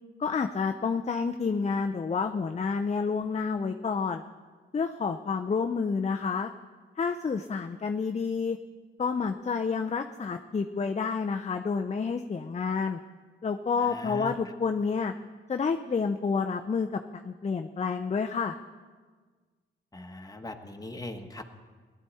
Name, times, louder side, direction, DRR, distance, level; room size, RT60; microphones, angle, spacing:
voice 1, 0.2-4.2 4.7-6.5 7.0-8.6 9.0-13.0 13.4-15.1 15.5-16.9 17.2-18.6, left 5 dB, 30° left, 6 dB, 0.6 m, -29 dB
voice 2, 13.8-14.3 19.9-21.4, left 1 dB, 15° left, 4 dB, 1.4 m, -40 dB
17.5 x 11.5 x 4.2 m, 1.5 s
cardioid pair, 60°, 21 cm